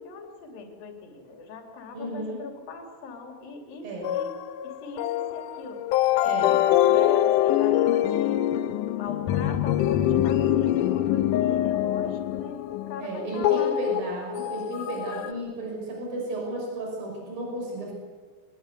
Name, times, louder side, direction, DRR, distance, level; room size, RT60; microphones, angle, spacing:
voice 1, 0.0-4.4 4.6-5.8 6.2-8.4 8.9-13.8, left 4 dB, 60° left, 3 dB, 4.6 m, -40 dB
voice 2, 1.9-2.4 3.8-4.1 6.3-6.5 13.0-17.9, right 1 dB, 60° right, 0 dB, 7.4 m, -33 dB
sound 1, 4.0-15.3, left 12 dB, 80° left, 1.9 m, -24 dB
23.5 x 20.5 x 8.2 m, 1.5 s
omnidirectional pair, 4.7 m